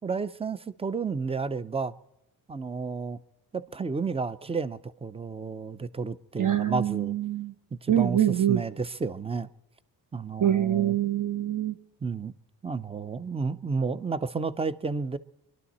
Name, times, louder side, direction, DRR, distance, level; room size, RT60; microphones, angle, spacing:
voice 1, 0.0-1.9 2.5-3.2 3.5-7.2 7.8-9.5 10.1-11.0 12.0-12.3 12.6-15.2, right 4 dB, 15° right, 0.5 m, -31 dB
voice 2, 6.4-7.5 7.9-8.6 10.4-11.7, right 11 dB, 55° right, 0.9 m, -25 dB
24.0 x 11.5 x 4.2 m
cardioid pair, 95°, 38 cm